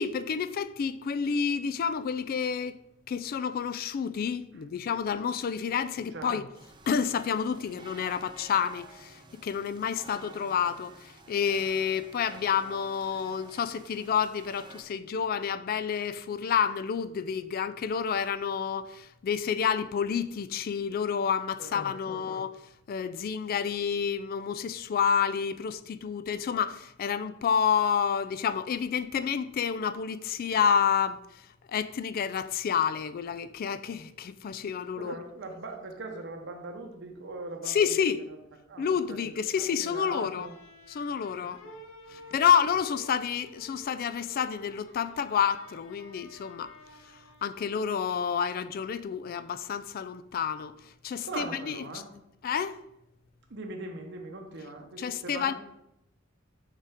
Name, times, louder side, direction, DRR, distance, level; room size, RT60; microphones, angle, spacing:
voice 1, 0.0-2.8 3.1-6.5 6.9-22.6 22.9-35.2 37.7-38.3 38.8-40.5 40.9-41.6 42.1-46.7 47.0-47.1 47.4-52.0 52.4-52.8 55.0-55.5, left 7 dB, 45° left, 0.3 m, -29 dB
sound 1, 6.5-14.8, right 3 dB, 25° right, 0.5 m, -51 dB
voice 2, 35.0-38.1 38.7-39.2 39.5-40.5 41.4-41.8 42.1-42.2 51.3-52.1 53.5-55.5, right 2 dB, 60° right, 0.8 m, -41 dB
sound 2, 40.4-47.9, equal, 70° left, 0.8 m, -52 dB
5.5 x 5.0 x 3.5 m
head